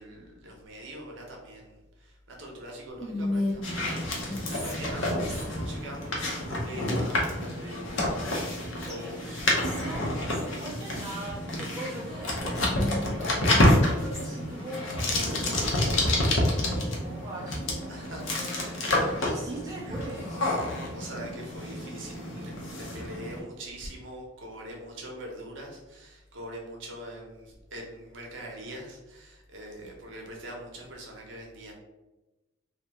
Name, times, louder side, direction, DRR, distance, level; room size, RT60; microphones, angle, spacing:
voice 1, 0.0-9.5 9.9-10.2 17.9-18.9 19.9-20.0 20.5-31.7, right 1 dB, 65° right, 0 dB, 0.8 m, -43 dB
Whispering, 3.0-5.8 7.8-8.6 8.9-9.0 9.4-10.5 12.3-14.5, left 1 dB, ahead, 0.9 m, -35 dB
sound 1, 3.6-23.4, left 1 dB, 70° left, 0.7 m, -29 dB
voice 2, 4.8-5.2 8.9-9.2 9.7-20.6, right 1 dB, 15° right, -4 dB, 0.4 m, -41 dB
2.7 x 2.2 x 3.4 m, 1.1 s
head